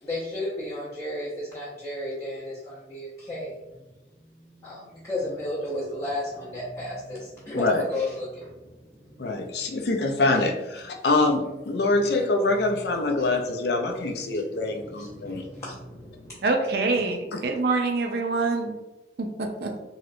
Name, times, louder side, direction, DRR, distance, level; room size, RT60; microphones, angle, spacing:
voice 1, 0.0-3.7 4.2-9.9 12.0-12.2 13.0-13.3 14.2-16.5, left 1 dB, 15° left, -9 dB, 0.6 m, -34 dB
voice 2, 9.2-15.4, left 2 dB, 70° left, 3 dB, 0.5 m, -25 dB
voice 3, 16.4-18.8 19.2-19.7, right 3 dB, 65° right, 3 dB, 0.5 m, -25 dB
3.0 x 2.8 x 2.5 m, 1.0 s
head